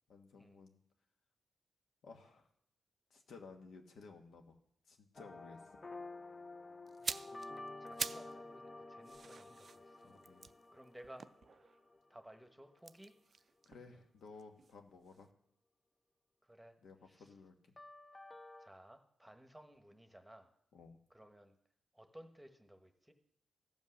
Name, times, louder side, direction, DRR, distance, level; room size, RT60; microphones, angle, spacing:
voice 1, 0.1-0.8 2.0-2.5 3.1-4.6 4.9-5.6 10.0-10.5 13.6-15.3 16.8-17.5 20.7-21.0, left 4 dB, 80° left, 4 dB, 1.4 m, -56 dB
sound 1, 5.1-12.4 17.8-18.7, left 2 dB, 30° left, 0.7 m, -51 dB
voice 2, 6.9-7.4 7.8-10.3 10.7-11.3 12.1-13.1 16.4-16.8 17.1-17.3 18.6-20.5 21.1-21.5 21.9-23.1, right 1 dB, 5° right, 6 dB, 1.2 m, -58 dB
sound 2, 6.9-8.4 8.7-11.9 12.8-14.8 15.1-15.3, right 5 dB, 50° right, 0.3 m, -46 dB
14.5 x 5.4 x 6.4 m, 0.71 s
cardioid pair, 100°, 0 cm